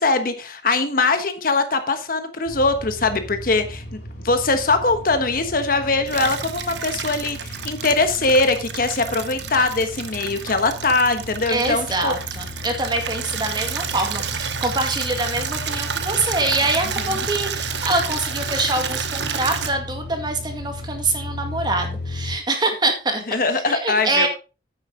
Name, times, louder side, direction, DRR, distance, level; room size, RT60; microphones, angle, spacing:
voice 1, 0.0-3.8 4.2-12.1 17.0-17.1 23.3-24.3, left 3 dB, 50° left, 9 dB, 1.2 m, -21 dB
sound 1, 2.5-22.4, left 2 dB, 70° left, 2.9 m, -35 dB
Water tap faucet / Liquid, 6.1-19.7, right 7 dB, 80° right, 1.0 m, -30 dB
voice 2, 11.5-23.2 23.7-24.3, right 2 dB, 25° right, 5 dB, 2.0 m, -24 dB
9.6 x 8.6 x 3.8 m, 0.31 s
head